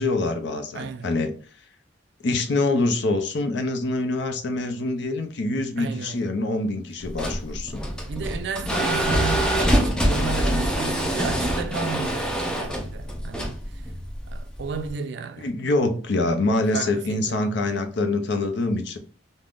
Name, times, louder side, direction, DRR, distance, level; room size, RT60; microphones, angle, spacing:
voice 1, 0.0-1.3 2.2-7.8 15.4-19.0, left 2 dB, 65° left, 0.5 m, -25 dB
voice 2, 0.7-1.1 5.8-6.2 8.1-13.6 14.3-15.5 16.7-17.6, right 6 dB, 65° right, 0.3 m, -33 dB
sound 1, 7.0-14.9, equal, 5° left, 0.4 m, -25 dB
3.4 x 2.1 x 2.4 m
head